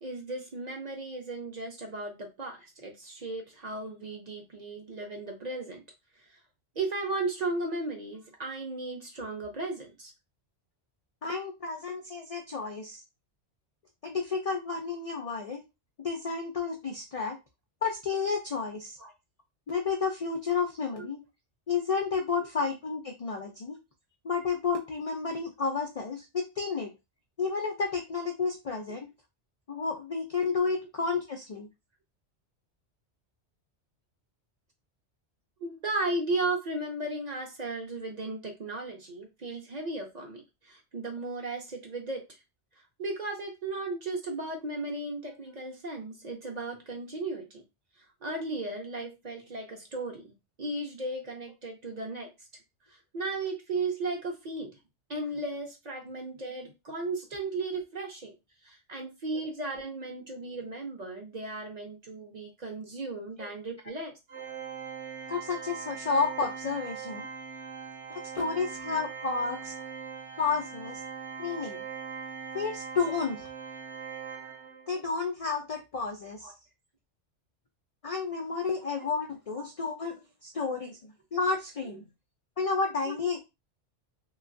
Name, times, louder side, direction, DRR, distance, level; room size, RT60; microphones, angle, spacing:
voice 1, 0.0-5.8 6.8-10.1 19.0-19.1 21.0-21.1 35.6-42.2 43.0-47.6 48.2-52.3 53.1-54.7 55.1-58.3 58.6-64.1 76.4-76.5 79.6-79.7 81.9-82.0 83.1-83.2, right 2 dB, 45° right, 2 dB, 0.6 m, -35 dB
voice 2, 11.2-13.0 14.0-15.6 16.0-17.4 17.8-19.0 19.7-21.2 21.7-23.8 24.2-26.9 27.4-29.1 29.7-31.7 65.3-67.3 68.1-69.7 70.4-71.0 71.4-71.8 72.5-73.5 74.9-76.5 78.0-82.0 82.6-83.4, left 5 dB, 65° left, 3 dB, 0.3 m, -31 dB
Organ, 64.3-75.0, right 6 dB, 75° right, 0.9 m, -41 dB
3.0 x 2.3 x 2.5 m, 0.24 s
omnidirectional pair, 1.2 m